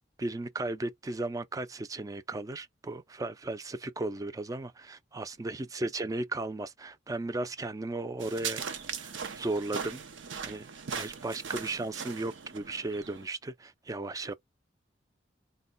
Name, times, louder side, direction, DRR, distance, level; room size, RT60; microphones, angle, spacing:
voice 1, 0.2-8.6 9.0-10.0 10.4-10.7 10.9-14.3, right 2 dB, 20° right, 0.4 m, -35 dB
voice 2, 5.3-5.7 14.2-14.3, right 4 dB, 65° right, 1.2 m, -67 dB
sound 1, 8.2-13.2, right 6 dB, 85° right, 0.7 m, -39 dB
4.2 x 2.2 x 3.9 m
head